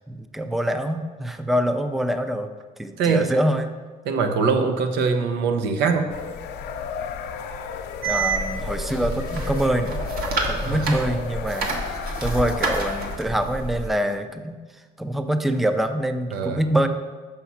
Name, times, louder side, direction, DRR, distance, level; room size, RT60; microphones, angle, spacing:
voice 1, 0.1-2.5 2.8-3.7 8.0-10.0 10.4-11.7 12.2-14.6 15.0-16.9, right 1 dB, ahead, 8 dB, 0.4 m, -25 dB
voice 2, 3.0-3.4 4.1-6.1 10.6-10.9 16.3-16.6, right 5 dB, 80° right, 6 dB, 0.8 m, -22 dB
sound 1, 6.1-13.2, left 6 dB, 80° left, 0.7 m, -33 dB
sound 2, 8.0-13.9, right 3 dB, 65° right, 1.4 m, -28 dB
6.2 x 5.7 x 5.8 m, 1.4 s
cardioid pair, 110°, 17 cm